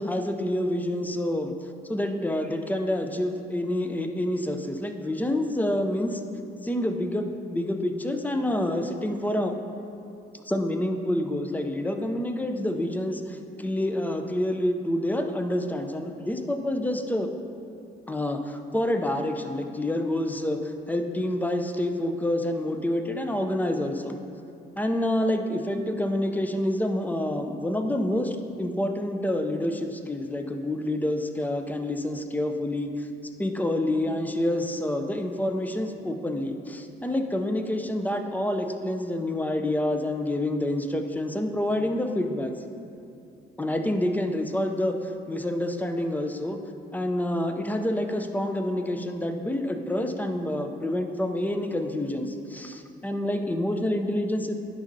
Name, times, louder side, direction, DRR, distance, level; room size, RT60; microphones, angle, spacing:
voice 1, 0.0-1.5 1.9-6.3 6.6-9.6 10.3-17.3 18.1-24.2 24.8-33.1 33.4-42.5 43.6-46.6 46.9-54.5, left 1 dB, 10° left, 6 dB, 0.5 m, -28 dB
10.0 x 5.1 x 2.7 m, 2.6 s
cardioid pair, 90°, 20 cm